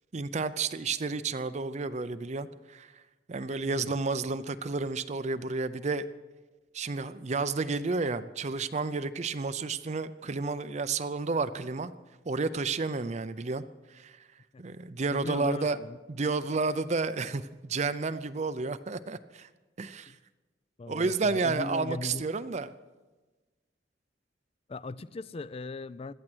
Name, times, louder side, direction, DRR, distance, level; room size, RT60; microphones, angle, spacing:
voice 1, 0.1-2.9 3.3-6.1 6.7-11.9 12.3-13.6 13.9-14.1 14.6-15.8 16.1-19.5 19.8-20.1 20.9-22.7, right 4 dB, 40° right, 13 dB, 0.5 m, -31 dB
voice 2, 3.7-4.0 14.5-14.6 15.1-16.0 20.1-20.2 20.8-22.2 24.7-26.1, left 3 dB, 35° left, 19 dB, 0.4 m, -39 dB
17.5 x 12.5 x 6.2 m, 1.2 s
head